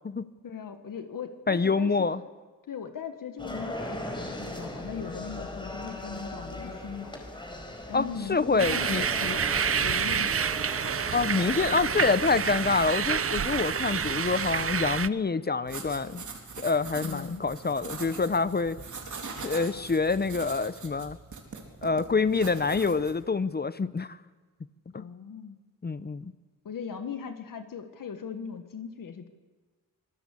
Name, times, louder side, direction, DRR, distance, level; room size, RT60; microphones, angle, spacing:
voice 1, 0.4-1.9 2.7-7.2 7.9-9.5 9.8-10.4 11.6-12.4 17.0-17.4 24.9-25.6 26.6-29.3, left 6 dB, 75° left, 8 dB, 1.8 m, -39 dB
voice 2, 1.5-2.2 7.9-9.0 11.1-16.2 16.6-18.8 19.4-21.2 21.8-24.2 24.9-25.0 25.8-26.3, left 4 dB, 30° left, 15 dB, 0.8 m, -26 dB
sound 1, 3.4-12.2, left 1 dB, 15° left, 4.5 m, -39 dB
sound 2, 8.6-15.1, right 7 dB, 45° right, 0.7 m, -28 dB
sound 3, 15.6-23.2, right 4 dB, 60° right, 4.1 m, -42 dB
25.5 x 20.0 x 8.4 m, 1.3 s
wide cardioid pair, 105°, 33 cm